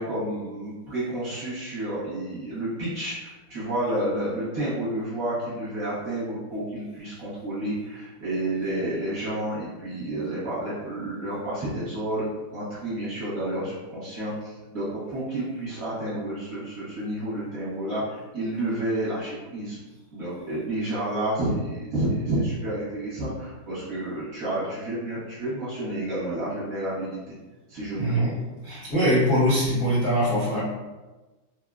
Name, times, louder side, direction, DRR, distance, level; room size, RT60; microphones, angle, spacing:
voice 1, 0.0-12.3 12.5-19.8 20.1-27.4 27.7-28.3, right 1 dB, 55° right, -9 dB, 1.2 m, -30 dB
voice 2, 28.0-28.4 28.6-30.6, equal, 45° left, -12 dB, 0.7 m, -22 dB
3.5 x 2.1 x 2.4 m, 1.2 s
omnidirectional pair, 2.1 m